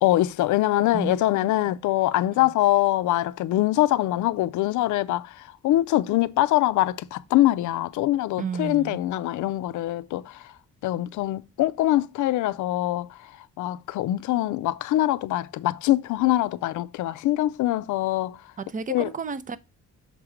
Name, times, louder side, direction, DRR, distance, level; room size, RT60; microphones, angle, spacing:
voice 1, 0.0-10.4 10.8-13.1 13.6-18.4 18.9-19.1, left 15 dB, 85° left, 0.5 m, -23 dB
voice 2, 0.9-1.7 2.4-2.5 8.4-9.0 18.7-19.6, right 5 dB, 25° right, 0.5 m, -33 dB
6.6 x 3.0 x 4.9 m
cardioid pair, 130°, 29 cm